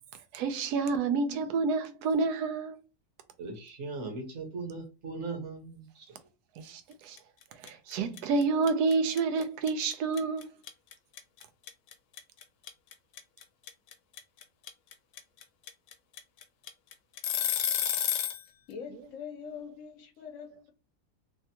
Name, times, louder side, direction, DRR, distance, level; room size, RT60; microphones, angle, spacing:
voice 1, 0.3-2.8 6.6-7.2 7.6-10.5 18.9-19.1 19.4-19.5, right 4 dB, 85° right, 1.1 m, -29 dB
voice 2, 3.4-6.1, right 3 dB, 55° right, 1.2 m, -39 dB
sound 1, 7.2-7.4 7.7-18.4, left 10 dB, 80° left, 1.1 m, -31 dB
voice 3, 18.7-20.7, left 7 dB, 60° left, 1.0 m, -43 dB
3.3 x 2.3 x 2.7 m
omnidirectional pair, 1.6 m